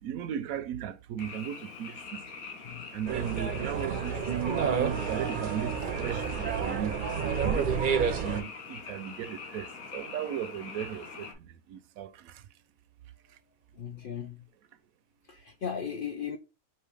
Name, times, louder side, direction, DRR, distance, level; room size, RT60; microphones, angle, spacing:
voice 1, 0.0-2.2 2.9-4.2 4.6-7.0 7.4-12.4, right 9 dB, 85° right, 1.0 m, -37 dB
Frog, 1.2-11.3, left 5 dB, 90° left, 1.4 m, -44 dB
sound 1, 3.1-8.4, right 6 dB, 50° right, 0.6 m, -30 dB
voice 2, 13.8-14.4 15.3-16.4, left 7 dB, 60° left, 0.5 m, -36 dB
4.7 x 2.8 x 3.4 m
omnidirectional pair, 1.4 m